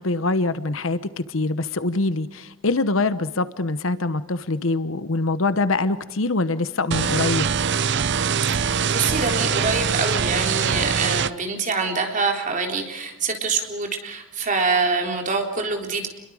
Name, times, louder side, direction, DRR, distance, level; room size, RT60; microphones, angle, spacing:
voice 1, 0.0-7.5, left 3 dB, 80° left, 13 dB, 1.0 m, -24 dB
sound 1, 6.9-11.3, right 6 dB, 60° right, 0.6 m, -23 dB
voice 2, 8.5-16.1, right 4 dB, 40° right, 3 dB, 3.8 m, -25 dB
30.0 x 22.5 x 4.9 m, 1.0 s
head